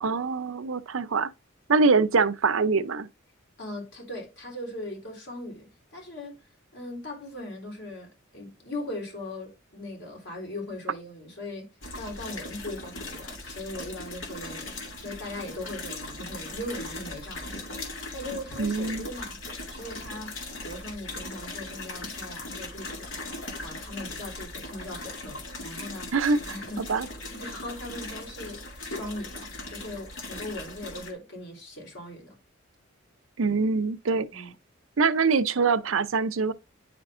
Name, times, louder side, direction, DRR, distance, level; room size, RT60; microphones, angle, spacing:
voice 1, 0.0-1.3 1.7-3.1 18.6-19.1 26.1-26.4 26.8-27.1 33.4-34.4 35.0-36.5, right 4 dB, 80° right, 0.6 m, -24 dB
voice 2, 3.6-6.4 6.7-11.7 12.0-17.7 18.1-26.2 26.5-32.4 34.3-34.5, left 1 dB, 55° left, 3.6 m, -39 dB
sound 1, 11.8-31.1, left 2 dB, 75° left, 2.2 m, -39 dB
9.7 x 5.2 x 2.5 m
head